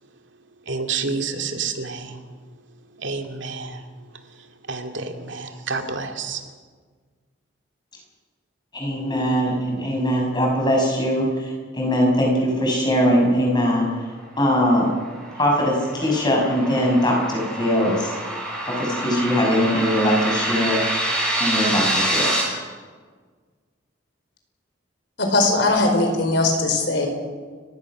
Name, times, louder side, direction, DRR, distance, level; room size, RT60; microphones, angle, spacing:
voice 1, 0.7-2.2 3.0-3.8 4.7-6.4, right 4 dB, 70° right, 5 dB, 2.4 m, -29 dB
voice 2, 8.7-13.9 14.4-14.9 15.4-18.1 18.7-20.8 21.4-22.3, equal, 20° left, -1 dB, 6.4 m, -21 dB
sound 1, 14.7-22.4, right 1 dB, 5° left, 6.9 m, -26 dB
voice 3, 25.2-27.1, left 2 dB, 65° left, 3 dB, 5.0 m, -20 dB
30.0 x 16.5 x 6.2 m, 1.5 s
head